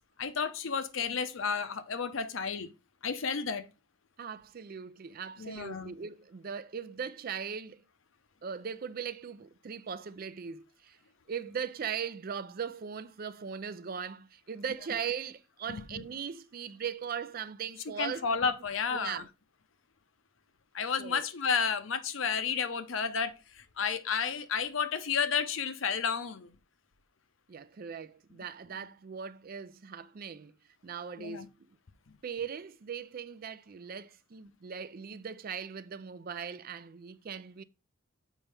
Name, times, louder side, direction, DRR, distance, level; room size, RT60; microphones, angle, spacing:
voice 1, 0.2-2.7 3.0-3.7 5.4-5.9 15.7-16.0 18.0-19.2 20.7-26.5 31.2-31.5, left 6 dB, 75° left, 0.7 m, -32 dB
voice 2, 4.2-7.8 8.4-11.0 11.3-18.3 18.9-19.3 21.0-21.3 27.5-30.5 30.8-31.5 32.2-37.6, right 7 dB, 45° right, 0.4 m, -39 dB
7.3 x 5.4 x 3.4 m
head